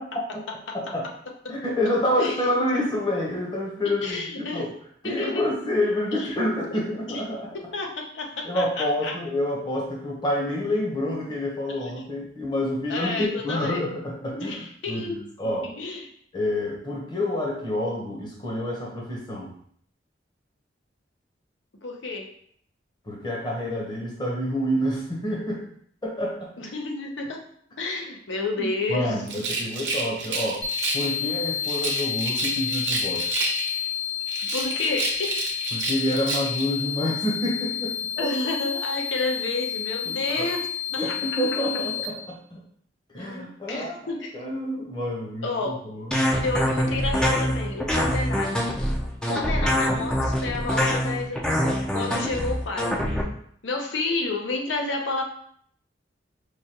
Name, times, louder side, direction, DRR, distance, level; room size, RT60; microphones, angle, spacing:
voice 1, 0.1-0.4 0.7-1.1 1.5-4.7 5.0-7.5 8.4-15.7 16.3-19.5 23.1-25.6 26.0-26.5 28.6-30.7 30.9-33.3 35.7-38.3 40.0-40.5 40.9-42.6 43.1-46.4, left 1 dB, 25° left, -3 dB, 0.9 m, -28 dB
voice 2, 4.0-4.7 5.0-5.4 6.1-6.3 6.7-6.8 7.1-7.2 7.5-9.2 11.8-11.9 12.9-13.8 14.3-15.2 15.6-16.1 21.8-22.3 26.6-27.4 27.8-29.4 34.5-35.4 38.2-40.7 41.0-41.4 43.1-44.3 45.4-45.8 46.4-48.6 49.2-53.0 53.6-55.2, left 3 dB, 80° left, 2 dB, 0.7 m, -30 dB
Rattle, 29.2-31.2 31.6-33.9 34.3-36.7, right 3 dB, 75° right, 0.7 m, -30 dB
sound 1, 30.6-42.0, left 9 dB, 60° left, 1.1 m, -30 dB
sound 2, 46.1-53.2, equal, 5° left, 0.4 m, -24 dB
4.8 x 2.3 x 2.8 m, 0.63 s
head